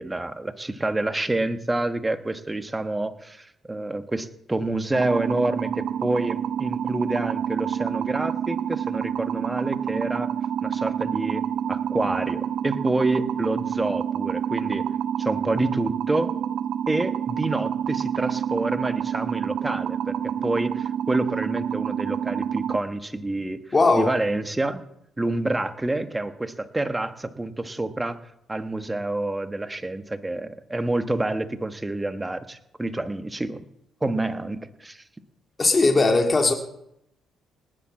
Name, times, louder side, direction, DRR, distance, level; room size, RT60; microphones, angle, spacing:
voice 1, 0.0-10.3 10.6-14.9 15.2-16.3 16.9-23.6 23.9-24.8 25.2-28.2 28.5-33.6 34.0-35.0, right 2 dB, 15° right, 10 dB, 1.2 m, -28 dB
sound 1, 4.9-22.8, right 9 dB, 70° right, 0.6 m, -28 dB
voice 2, 23.7-24.1 35.6-36.5, left 3 dB, 30° left, 4 dB, 2.0 m, -18 dB
19.0 x 7.5 x 7.5 m, 0.77 s
cardioid pair, 90°, 0 cm